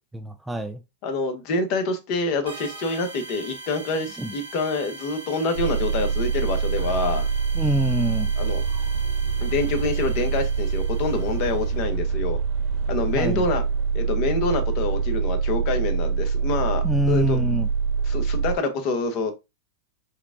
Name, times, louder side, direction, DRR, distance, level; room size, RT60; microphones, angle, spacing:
voice 1, 0.1-0.8 4.2-4.3 7.5-8.3 13.1-13.5 16.8-17.7, right 1 dB, 5° right, 0.5 m, -25 dB
voice 2, 1.0-7.3 8.4-8.6 9.4-12.4 12.9-13.6 13.9-17.4 18.1-19.3, left 3 dB, 50° left, 1.1 m, -26 dB
sound 1, 2.5-11.8, right 2 dB, 90° right, 1.2 m, -41 dB
sound 2, 5.5-18.5, right 5 dB, 50° right, 1.4 m, -25 dB
4.6 x 2.4 x 3.6 m
hypercardioid pair, 105°, 0 cm